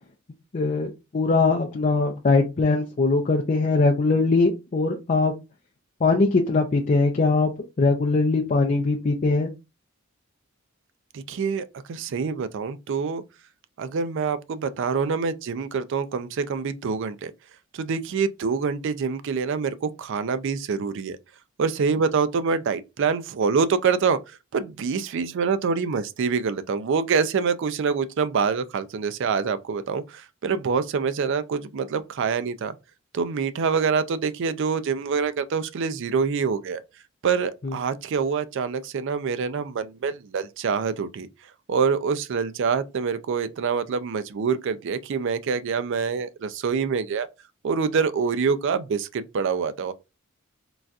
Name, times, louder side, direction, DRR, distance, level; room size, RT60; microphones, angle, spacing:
voice 1, 0.5-5.3 6.0-7.5 7.8-9.5 37.6-37.7, left 3 dB, 35° left, 0.4 m, -21 dB
voice 2, 11.1-13.2 13.8-17.3 17.7-21.2 21.6-32.7 33.1-36.8 37.2-41.3 41.7-47.3 47.6-49.9, right 5 dB, 60° right, 0.4 m, -26 dB
3.9 x 2.3 x 2.4 m
head